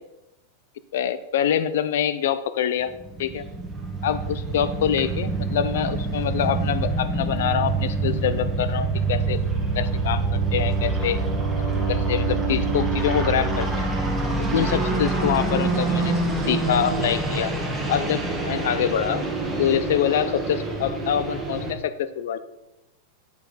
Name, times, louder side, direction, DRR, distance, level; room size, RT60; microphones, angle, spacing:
voice 1, 0.9-2.9 3.2-3.4 4.0-11.2 11.6-13.9 14.5-17.5 17.9-19.2 19.6-22.4, left 9 dB, 75° left, 14 dB, 0.6 m, -25 dB
sound 1, 2.9-21.7, right 3 dB, 5° right, 1.7 m, -26 dB
8.5 x 8.1 x 4.1 m, 0.94 s
supercardioid pair, 150°, 0 cm